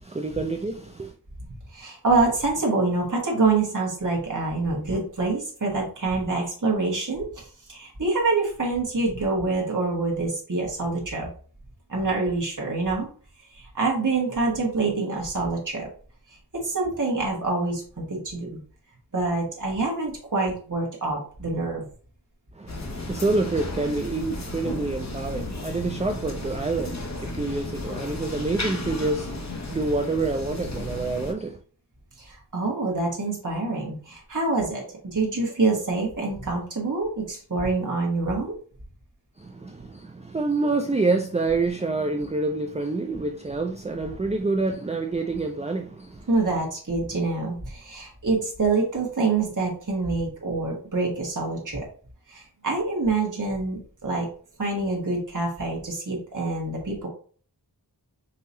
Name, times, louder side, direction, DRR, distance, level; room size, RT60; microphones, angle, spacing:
voice 1, 0.0-1.1 22.6-31.6 39.4-46.3, right 3 dB, 15° right, 0.4 m, -27 dB
voice 2, 1.7-11.3 11.9-13.1 13.5-15.9 16.5-18.6 19.1-21.8 32.2-38.5 46.3-51.9 52.3-54.3 54.6-57.1, right 3 dB, 50° right, 1.4 m, -26 dB
sound 1, 22.7-31.3, left 2 dB, 40° left, 0.9 m, -34 dB
5.5 x 2.9 x 2.7 m
wide cardioid pair, 40°, 41 cm